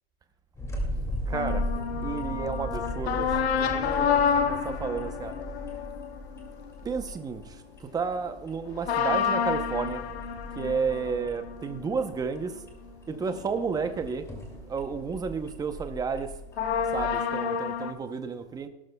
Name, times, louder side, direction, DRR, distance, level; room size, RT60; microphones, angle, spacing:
sound 1, 0.6-17.1, equal, 10° left, 2.4 m, -38 dB
sound 2, 1.3-7.2 8.8-14.2 14.5-14.6 16.6-17.9, left 7 dB, 90° left, 1.3 m, -30 dB
voice 1, 1.3-1.7 2.0-5.9 6.8-12.6 13.1-14.3 14.7-16.4 16.9-18.7, right 5 dB, 10° right, 8 dB, 0.7 m, -32 dB
17.0 x 12.5 x 2.3 m, 0.94 s
hypercardioid pair, 135°, 30 cm